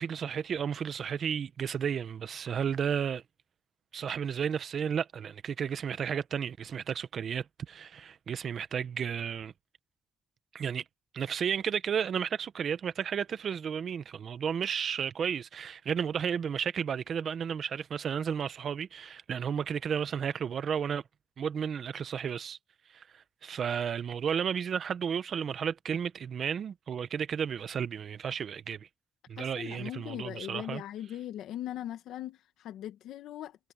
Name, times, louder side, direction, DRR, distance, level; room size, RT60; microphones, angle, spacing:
voice 1, 0.0-3.2 3.9-9.5 10.5-10.8 11.1-21.0 21.4-22.6 22.9-28.9 29.3-30.8, right 7 dB, 55° right, 1.0 m, -33 dB
voice 2, 29.4-33.6, left 12 dB, 90° left, 2.0 m, -40 dB
cardioid pair, 105°, 0 cm